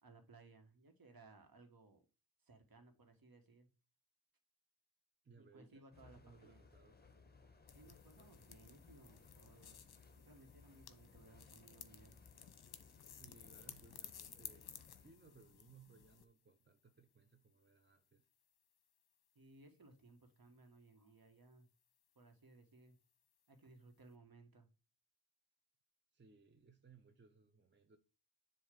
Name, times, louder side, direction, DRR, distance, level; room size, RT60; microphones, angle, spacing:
voice 1, 0.0-2.0 2.4-3.7 5.4-6.6 7.7-9.9 10.1-12.2 19.3-21.7 22.1-23.0 23.5-24.7, right 3 dB, 45° right, 1.6 m, -62 dB
voice 2, 5.2-7.0 13.1-18.3 26.1-28.0, right 4 dB, 20° right, 0.7 m, -65 dB
sound 1, 5.9-15.1, left 4 dB, 20° left, 1.1 m, -64 dB
sound 2, 7.7-16.3, left 8 dB, 50° left, 0.9 m, -57 dB
7.1 x 2.8 x 5.3 m
cardioid pair, 60°, 50 cm